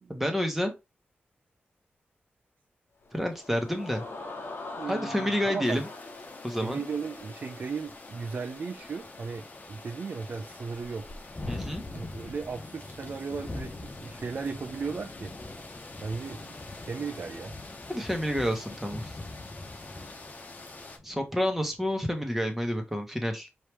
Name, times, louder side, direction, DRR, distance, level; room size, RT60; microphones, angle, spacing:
voice 1, 0.1-0.7 3.1-4.0 4.9-5.9 6.4-6.8 11.5-11.8 17.9-19.1 21.0-23.5, equal, 5° right, 1.3 m, -29 dB
sound 1, 3.0-8.5, left 3 dB, 65° left, 1.1 m, -43 dB
voice 2, 4.8-5.8 6.6-11.1 11.9-15.3 16.0-16.6 16.8-17.5, right 5 dB, 55° right, 0.5 m, -36 dB
sound 2, 5.6-21.0, left 3 dB, 45° left, 1.1 m, -47 dB
Thunderstorm, 7.9-8.0 8.4-8.5 8.8-22.4, left 2 dB, 25° left, 0.7 m, -44 dB
4.7 x 3.1 x 3.4 m
wide cardioid pair, 90°, 4 cm